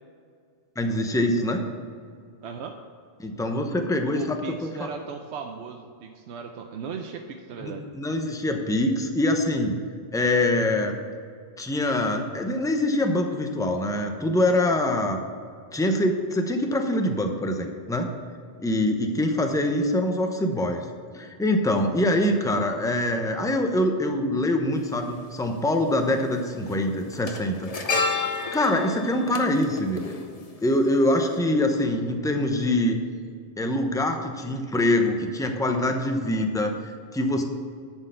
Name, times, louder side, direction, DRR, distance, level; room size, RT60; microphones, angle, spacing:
voice 1, 0.8-1.6 3.2-4.9 7.6-9.7 10.1-11.0 11.6-15.2 15.7-18.1 18.6-20.9 21.1-28.0 28.5-30.2 30.6-33.0 33.6-37.4, left 1 dB, 5° left, 4 dB, 0.6 m, -24 dB
voice 2, 2.4-2.7 4.1-7.8, right 6 dB, 85° right, 4 dB, 0.9 m, -37 dB
sound 1, 24.8-24.9 26.1-26.3 26.6-30.9 31.2-31.4, left 4 dB, 40° left, 0.8 m, -30 dB
11.0 x 4.6 x 6.7 m, 2.2 s
omnidirectional pair, 1.1 m